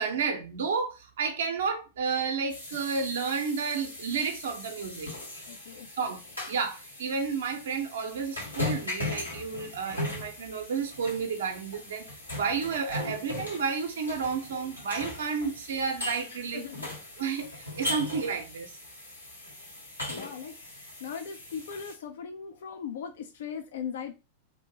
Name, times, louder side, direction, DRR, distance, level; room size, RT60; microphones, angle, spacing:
voice 1, 0.0-5.1 6.0-6.2 6.5-12.1 12.3-16.7 17.2-17.5 17.8-18.7, right 5 dB, 60° right, 0.6 m, -31 dB
sound 1, 2.5-21.9, left 2 dB, 85° left, 1.3 m, -39 dB
voice 2, 5.5-5.9 16.3-16.9 20.1-24.1, left 7 dB, 60° left, 0.3 m, -39 dB
2.7 x 2.5 x 2.8 m
figure-of-eight pair, 90°, 0 cm